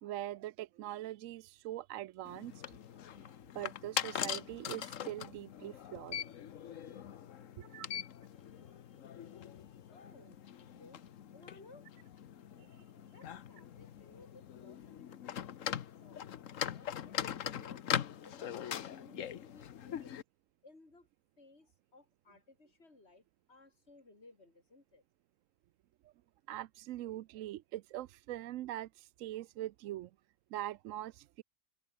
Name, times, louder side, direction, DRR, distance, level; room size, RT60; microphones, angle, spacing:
voice 1, 0.0-2.6 3.2-6.3 7.6-7.9 12.6-12.7 26.0-26.1 26.5-30.1 30.5-31.4, right 13 dB, 70° right, 0.9 m, -43 dB
sound 1, 2.2-20.2, left 9 dB, 70° left, 1.3 m, -42 dB
voice 2, 6.5-7.8 8.3-11.9 12.8-16.3 16.6-20.2 20.6-21.1 21.4-25.0, left 2 dB, 50° left, 4.5 m, -61 dB
omnidirectional pair, 1.4 m